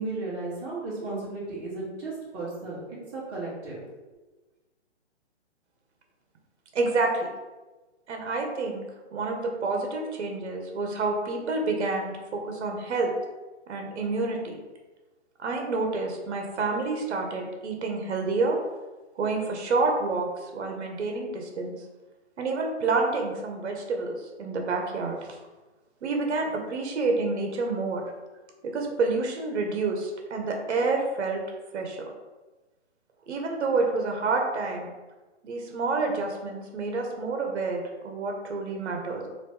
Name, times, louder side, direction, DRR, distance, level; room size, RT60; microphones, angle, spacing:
voice 1, 0.0-2.8 3.1-3.8, right 3 dB, 20° right, -7 dB, 0.9 m, -34 dB
voice 2, 6.7-7.3 8.1-8.9 9.1-13.1 13.7-14.6 15.4-18.6 19.2-21.7 22.4-25.4 26.0-28.0 28.6-31.4 31.7-32.1 33.3-34.9 35.4-39.3, right 3 dB, 70° right, 2 dB, 0.8 m, -28 dB
3.0 x 2.6 x 3.4 m, 1.2 s
hypercardioid pair, 160°, 35 cm